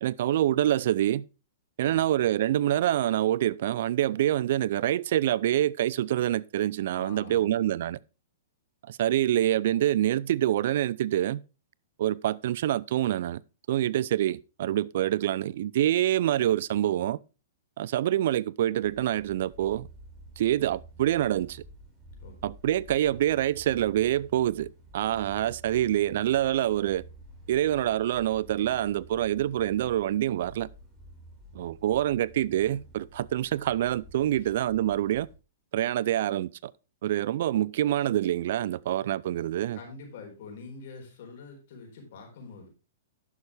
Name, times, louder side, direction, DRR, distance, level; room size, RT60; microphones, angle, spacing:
voice 1, 0.0-1.2 1.8-8.0 8.9-11.4 12.0-13.4 13.7-17.2 17.8-19.9 20.4-21.6 22.4-27.0 27.5-30.7 31.5-35.3 35.7-36.7 37.0-39.8, right 12 dB, 60° right, 0.3 m, -26 dB
voice 2, 6.9-7.5 22.2-22.3 39.7-42.7, left 4 dB, 60° left, 4.1 m, -45 dB
sound 1, 18.8-35.4, right 1 dB, 10° right, 3.7 m, -50 dB
11.0 x 7.0 x 3.3 m
hypercardioid pair, 125°, 0 cm